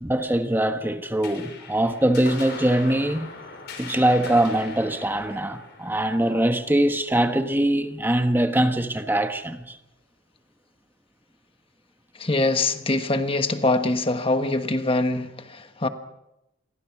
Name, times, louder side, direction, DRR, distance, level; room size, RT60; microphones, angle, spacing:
voice 1, 0.0-3.3 3.8-9.8, right 1 dB, 10° right, 1.3 m, -22 dB
sound 1, 1.2-8.0, left 4 dB, 60° left, 5.7 m, -41 dB
voice 2, 12.2-15.9, left 2 dB, 30° left, 1.4 m, -23 dB
29.0 x 23.0 x 6.1 m
head